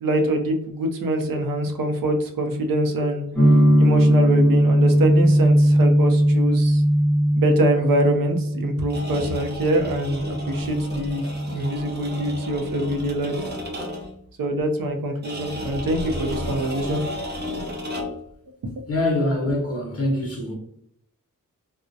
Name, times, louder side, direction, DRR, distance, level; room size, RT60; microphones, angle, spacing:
voice 1, 0.0-3.3 3.8-6.8 7.4-13.5 14.4-17.0 17.5-17.6 18.8-18.9 19.4-19.6, right 1 dB, 90° right, 0.5 m, -24 dB
sound 1, 3.3-13.1, equal, 5° left, 0.7 m, -20 dB
sound 2, 8.8-14.2 15.2-18.3, left 1 dB, 30° right, 0.5 m, -33 dB
voice 2, 18.9-20.5, left 1 dB, 45° left, 0.8 m, -24 dB
2.3 x 2.1 x 2.6 m
wide cardioid pair, 140°, 33 cm